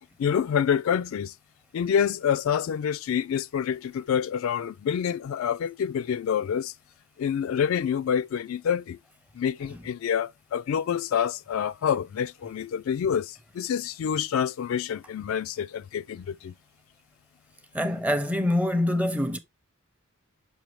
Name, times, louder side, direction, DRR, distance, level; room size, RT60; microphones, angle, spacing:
voice 1, 0.2-1.3 1.7-6.7 7.2-9.0 9.4-16.5, left 8 dB, 70° left, 0.3 m, -27 dB
voice 2, 17.7-19.4, left 1 dB, 5° right, 0.6 m, -25 dB
6.3 x 5.4 x 3.0 m
head